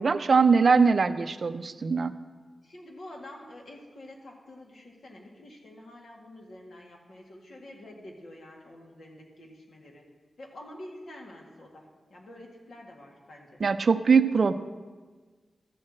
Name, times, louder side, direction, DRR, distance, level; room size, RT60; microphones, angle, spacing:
voice 1, 0.0-2.1 13.6-14.5, right 5 dB, 50° right, 11 dB, 0.4 m, -22 dB
voice 2, 2.6-10.0 10.4-13.6, left 1 dB, 60° left, 1 dB, 1.8 m, -47 dB
13.0 x 4.5 x 7.7 m, 1.4 s
wide cardioid pair, 125°, 0 cm